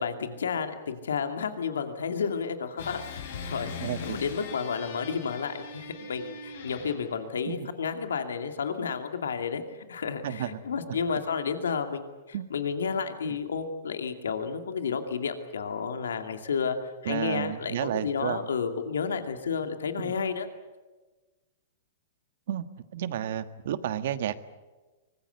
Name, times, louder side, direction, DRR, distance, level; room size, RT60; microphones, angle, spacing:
voice 1, 0.0-9.6 9.9-12.1 12.5-20.5, left 6 dB, 90° left, 7 dB, 2.5 m, -31 dB
sound 1, 2.8-7.3, left 5 dB, 75° left, 7.3 m, -40 dB
voice 2, 3.8-4.2 7.5-7.7 10.2-10.6 10.9-11.0 12.3-12.5 13.2-13.4 17.0-18.4 20.0-20.1 22.5-22.6 22.9-24.4, right 10 dB, 65° right, 11 dB, 1.6 m, -31 dB
24.0 x 20.5 x 8.2 m, 1.2 s
hypercardioid pair, 130°, 0 cm